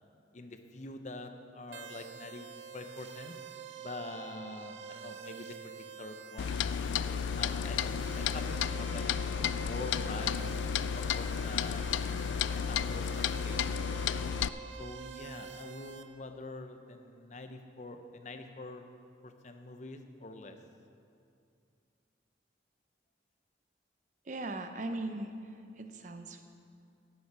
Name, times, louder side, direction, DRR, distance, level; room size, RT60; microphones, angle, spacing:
voice 1, 0.3-3.4 3.8-5.7 6.0-6.6 7.0-9.1 9.7-10.4 10.9-11.9 12.6-13.8 14.8-18.9 19.2-20.6, left 2 dB, 40° left, 7 dB, 0.7 m, -45 dB
sound 1, 1.7-16.0, right 7 dB, 85° right, 0.7 m, -47 dB
Clock, 6.4-14.5, left 8 dB, 85° left, 0.3 m, -32 dB
voice 2, 24.3-25.3 25.8-26.4, right 2 dB, 45° right, 7 dB, 0.7 m, -38 dB
16.5 x 7.1 x 4.8 m, 2.4 s
head